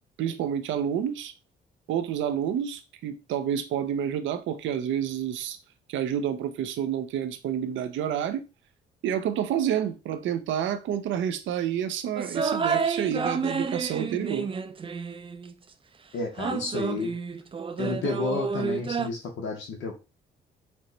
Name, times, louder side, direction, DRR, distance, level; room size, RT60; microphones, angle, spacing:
voice 1, 0.2-1.3 1.9-5.6 5.9-8.4 9.0-14.5, right 9 dB, 75° right, 0.5 m, -29 dB
sound 1, 12.2-15.5 16.4-19.1, right 5 dB, 25° right, 0.4 m, -29 dB
voice 2, 16.1-17.1 17.8-19.9, left 4 dB, 70° left, 0.8 m, -31 dB
4.4 x 2.1 x 3.9 m
cardioid pair, 90°, 20 cm